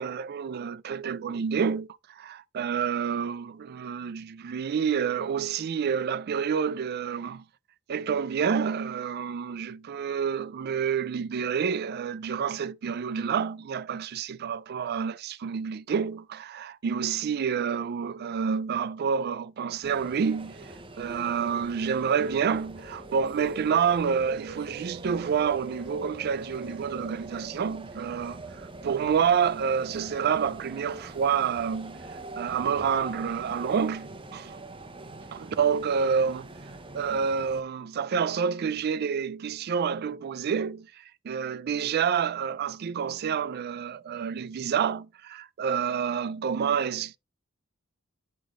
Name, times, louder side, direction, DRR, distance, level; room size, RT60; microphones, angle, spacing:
voice 1, 0.0-1.9 2.2-7.4 7.9-34.6 35.3-36.5 36.9-40.9 41.2-47.2, right 7 dB, 50° right, 0.3 m, -28 dB
sound 1, 19.8-37.6, right 2 dB, 25° right, 0.8 m, -43 dB
9.7 x 5.0 x 3.0 m
head